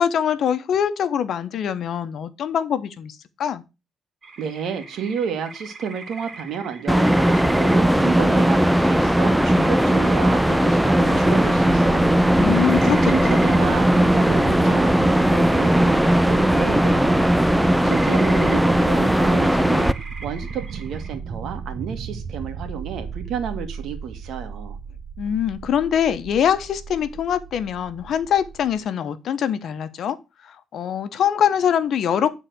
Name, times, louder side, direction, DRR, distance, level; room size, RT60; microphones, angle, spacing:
voice 1, 0.0-3.6 12.4-13.4 25.2-30.2 30.4-32.3, left 8 dB, 65° left, 1.0 m, -23 dB
sound 1, 4.2-21.2, right 3 dB, 40° right, 2.7 m, -41 dB
voice 2, 4.4-12.3 12.5-17.3 17.7-19.9 20.2-24.8, right 7 dB, 75° right, 1.9 m, -31 dB
sound 2, 6.9-19.9, equal, 5° right, 0.6 m, -18 dB
sound 3, 11.0-28.8, right 6 dB, 55° right, 1.1 m, -35 dB
10.5 x 4.0 x 6.2 m
cardioid pair, 90°, 0 cm